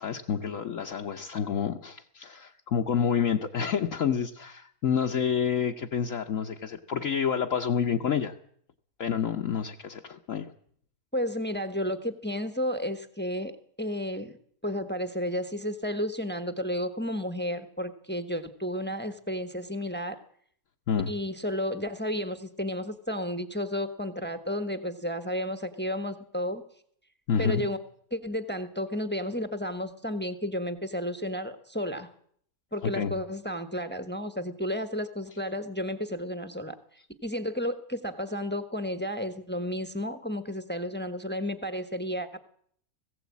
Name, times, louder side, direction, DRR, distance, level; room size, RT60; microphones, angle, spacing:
voice 1, 0.0-8.3 9.0-10.5 20.9-21.1 27.3-27.7 32.9-33.1, left 7 dB, 60° left, 2 dB, 1.3 m, -28 dB
voice 2, 11.1-13.5 13.8-14.4 14.6-20.2 21.1-26.6 27.4-27.8 28.1-32.1 32.7-36.8 37.2-42.4, equal, 10° left, 10 dB, 1.1 m, -32 dB
19.0 x 16.0 x 8.4 m, 0.63 s
omnidirectional pair, 1.6 m